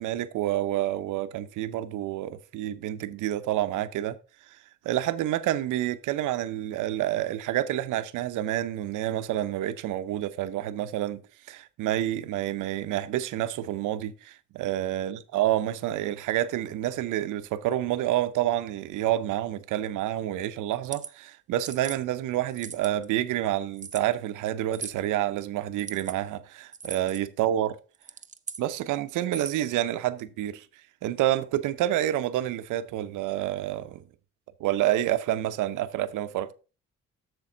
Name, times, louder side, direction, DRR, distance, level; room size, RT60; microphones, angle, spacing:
voice 1, 0.0-4.2 4.5-4.6 4.8-27.7 28.6-30.7 31.0-34.0 34.6-36.5, right 13 dB, 85° right, 0.7 m, -28 dB
sound 1, 20.7-21.1 21.6-22.0 22.5-23.0 23.8-24.0 24.7-25.0 25.7-26.2 26.7-27.2 27.9-28.6 29.2-29.7, right 5 dB, 25° right, 0.6 m, -39 dB
7.8 x 6.8 x 3.8 m
cardioid pair, 90°, 30 cm